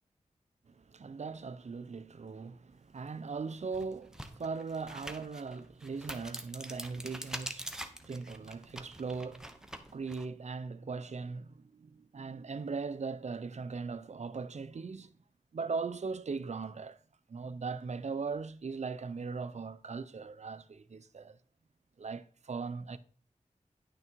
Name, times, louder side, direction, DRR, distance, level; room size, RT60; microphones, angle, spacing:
voice 1, 0.7-15.1 15.5-17.0 17.3-21.4 22.0-23.0, right 4 dB, 60° right, 0.7 m, -39 dB
sound 1, 3.0-3.1 3.6-10.3, right 1 dB, 5° right, 1.0 m, -45 dB
10.5 x 6.2 x 4.6 m
wide cardioid pair, 85°, 13 cm